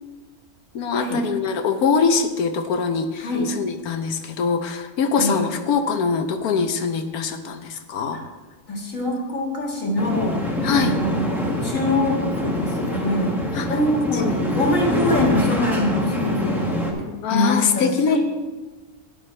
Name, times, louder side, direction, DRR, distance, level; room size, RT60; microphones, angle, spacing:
voice 1, 0.7-8.2 10.6-11.0 13.5-13.7 17.2-18.2, left 5 dB, 75° left, 7 dB, 1.3 m, -23 dB
voice 2, 8.7-10.5 10.7-13.3 13.7-16.7 17.0-18.2, left 1 dB, 60° left, -1 dB, 2.3 m, -24 dB
sound 1, 10.0-16.9, left 1 dB, ahead, 1.1 m, -25 dB
12.0 x 10.0 x 3.3 m, 1.3 s
omnidirectional pair, 1.6 m